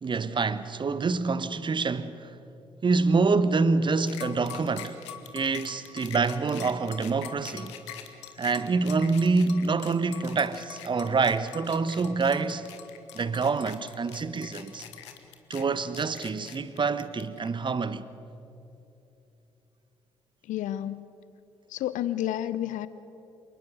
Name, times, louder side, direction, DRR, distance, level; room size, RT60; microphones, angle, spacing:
voice 1, 0.0-2.4 2.8-5.0 5.3-7.7 8.4-12.7 13.1-14.8 15.5-18.1, right 4 dB, 35° right, 1.2 m, -26 dB
sound 1, 4.1-17.5, left 11 dB, 80° left, 1.4 m, -43 dB
voice 2, 20.5-21.0 21.7-22.9, left 12 dB, 60° left, 0.8 m, -30 dB
27.5 x 19.5 x 6.5 m
figure-of-eight pair, 45°, 15 cm